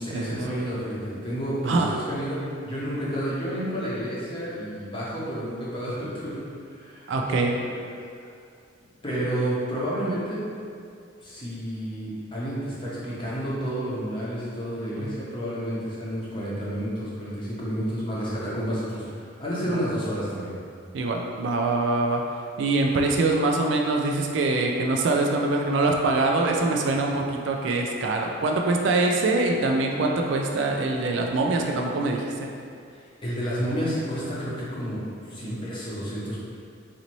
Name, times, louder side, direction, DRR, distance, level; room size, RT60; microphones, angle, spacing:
voice 1, 0.0-2.4 2.6-6.4 6.7-7.8 8.2-8.3 9.0-10.4 11.2-20.5 32.9-36.4, equal, 25° left, -8 dB, 0.8 m, -30 dB
voice 2, 1.6-2.0 7.1-7.5 15.0-15.2 19.7-19.8 20.9-22.2 22.6-32.5, right 2 dB, 65° right, 1 dB, 0.3 m, -24 dB
4.0 x 2.6 x 3.0 m, 2.3 s
head